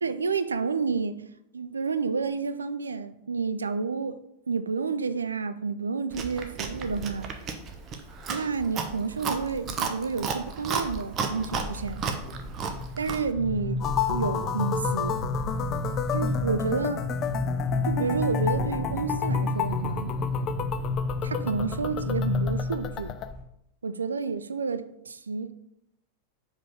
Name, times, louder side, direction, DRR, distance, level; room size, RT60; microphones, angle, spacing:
voice 1, 0.0-1.2 1.5-4.2 4.5-7.3 8.3-12.0 13.0-15.2 16.1-17.0 17.8-20.1 21.2-23.1 23.8-25.5, right 5 dB, 75° right, 0.4 m, -30 dB
Chewing mastication, 6.1-13.3, right 5 dB, 30° right, 0.7 m, -33 dB
sound 1, 6.7-7.2 7.7-8.2 8.9-9.7 10.1-10.5 10.8-23.4, left 2 dB, 10° right, 2.1 m, -31 dB
sound 2, 13.8-23.3, left 10 dB, 35° left, 0.3 m, -32 dB
5.1 x 3.5 x 5.4 m
figure-of-eight pair, 90°, 0 cm